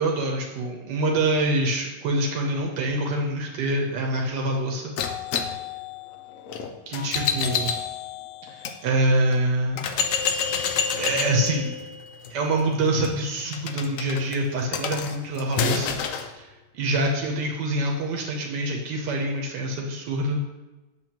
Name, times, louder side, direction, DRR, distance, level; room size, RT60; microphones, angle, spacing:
voice 1, 0.0-4.9 6.9-7.7 8.5-9.9 10.9-11.7 12.3-16.5 16.7-20.4, right 1 dB, 85° right, 0 dB, 1.5 m, -25 dB
sound 1, 5.0-8.8 9.3-9.4 9.8-16.3, left 6 dB, 65° left, 0.8 m, -29 dB
8.1 x 6.5 x 3.0 m, 1.1 s
omnidirectional pair, 1.8 m